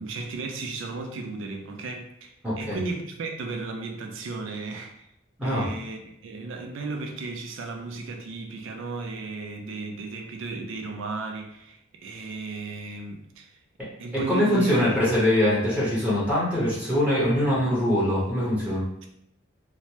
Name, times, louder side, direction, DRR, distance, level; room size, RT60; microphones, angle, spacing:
voice 1, 0.0-5.1 5.4-13.6 14.0-15.0, right 3 dB, 75° right, 3 dB, 0.4 m, -35 dB
voice 2, 2.4-2.8 5.4-5.7 14.3-18.8, left 1 dB, 5° right, -8 dB, 0.9 m, -23 dB
3.1 x 2.1 x 2.8 m, 0.78 s
head